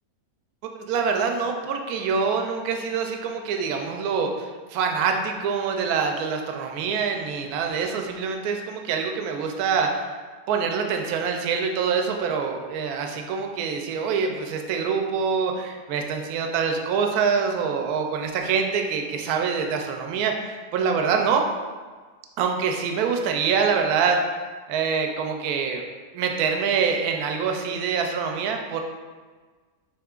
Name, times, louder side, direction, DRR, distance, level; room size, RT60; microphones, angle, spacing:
voice 1, 0.7-10.1 10.5-21.4 22.4-24.2 24.7-25.8 26.1-28.8, right 6 dB, 70° right, 3 dB, 1.0 m, -25 dB
7.3 x 3.0 x 2.4 m, 1.4 s
omnidirectional pair, 1.8 m